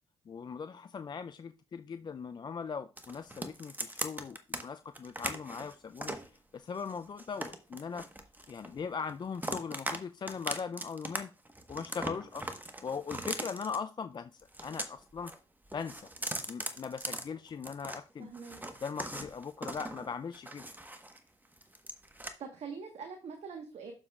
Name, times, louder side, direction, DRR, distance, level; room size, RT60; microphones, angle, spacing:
voice 1, 0.3-6.2 6.5-8.0 8.5-11.3 11.7-12.5 12.8-14.3 14.6-15.3 15.7-16.1 16.5-18.3 18.8-20.6, left 6 dB, 35° left, 0.4 m, -39 dB
sound 1, 3.0-4.6 4.9-6.3 6.8-8.8 9.1-10.0 10.3-11.2 11.4-13.8 14.4-15.4 15.7-18.0 18.3-21.2 21.5-22.3, right 1 dB, 15° right, 1.2 m, -40 dB
voice 2, 18.2-18.6 22.4-23.9, right 5 dB, 55° right, 1.3 m, -43 dB
9.6 x 7.0 x 2.4 m
hypercardioid pair, 45°, 13 cm